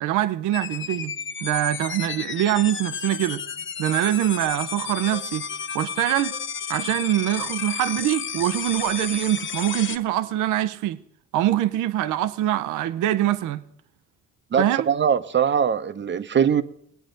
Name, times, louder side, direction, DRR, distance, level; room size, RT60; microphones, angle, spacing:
voice 1, 0.0-1.1 1.4-3.4 3.8-5.5 5.7-6.4 6.7-11.0 11.3-13.6 14.6-14.9, right 13 dB, 90° right, 0.6 m, -24 dB
sound 1, 0.5-10.0, left 7 dB, 40° left, 0.8 m, -32 dB
voice 2, 14.5-16.6, right 7 dB, 40° right, 0.7 m, -21 dB
21.0 x 8.7 x 3.8 m
cardioid pair, 90°, 30 cm